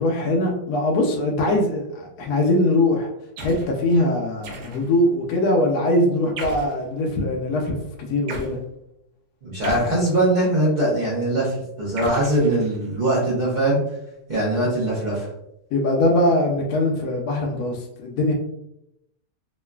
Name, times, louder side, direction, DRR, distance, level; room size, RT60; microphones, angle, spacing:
voice 1, 0.0-3.1 3.4-7.8 8.1-8.6 15.7-18.3, left 1 dB, 75° left, 0 dB, 1.1 m, -21 dB
sound 1, 3.4-3.8 4.4-5.1 6.4-6.8 8.3-8.6 9.6-10.5 12.0-13.0, right 1 dB, 85° right, 1.2 m, -36 dB
voice 2, 9.4-13.8 14.3-15.3, right 1 dB, 45° right, -6 dB, 0.6 m, -21 dB
3.0 x 2.4 x 2.2 m, 0.82 s
omnidirectional pair, 1.7 m